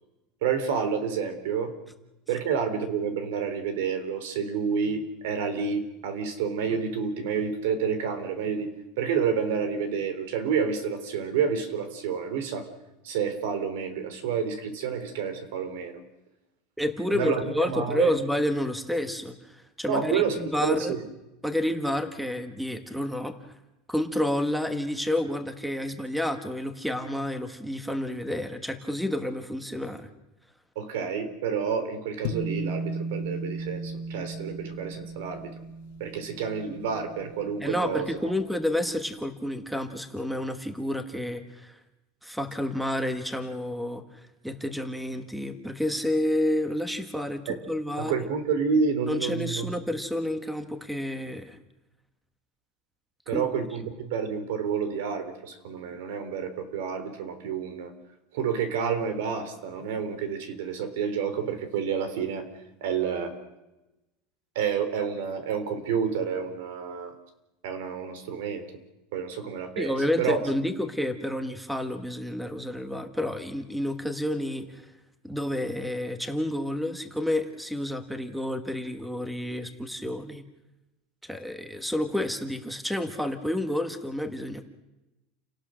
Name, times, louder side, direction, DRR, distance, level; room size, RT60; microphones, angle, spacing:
voice 1, 0.4-1.7 2.3-8.7 9.0-12.7 13.0-16.0 17.1-18.1 19.9-21.0 30.8-35.5 36.0-38.2 47.5-47.6 48.0-49.7 53.3-57.9 58.3-62.5 62.8-63.4 64.6-67.1 67.6-68.7 69.1-70.4, right 6 dB, 80° right, 10 dB, 3.6 m, -29 dB
voice 2, 16.8-20.9 21.4-23.3 23.9-30.1 37.6-41.8 42.2-48.1 49.1-51.6 53.3-53.5 69.8-74.9 75.2-80.4 81.2-84.6, left 1 dB, ahead, 8 dB, 1.4 m, -30 dB
sound 1, 32.2-38.8, right 2 dB, 70° left, 1.6 m, -36 dB
29.5 x 18.0 x 6.4 m, 0.98 s
supercardioid pair, 160°, 0 cm